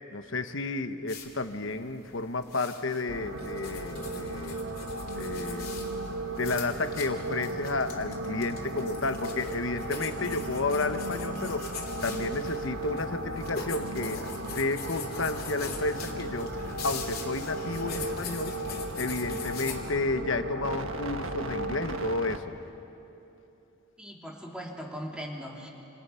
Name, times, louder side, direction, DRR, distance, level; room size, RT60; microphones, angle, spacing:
voice 1, 0.1-4.6 5.2-5.9 6.3-11.7 12.0-18.6 19.0-22.5, left 3 dB, 60° left, 9 dB, 1.1 m, -32 dB
sound 1, 1.1-19.8, left 5 dB, 45° left, 3.1 m, -42 dB
sound 2, 3.1-22.4, right 1 dB, 65° right, 1.4 m, -36 dB
voice 2, 24.0-25.7, equal, 5° right, -2 dB, 3.0 m, -39 dB
29.0 x 27.5 x 5.8 m, 2.9 s
head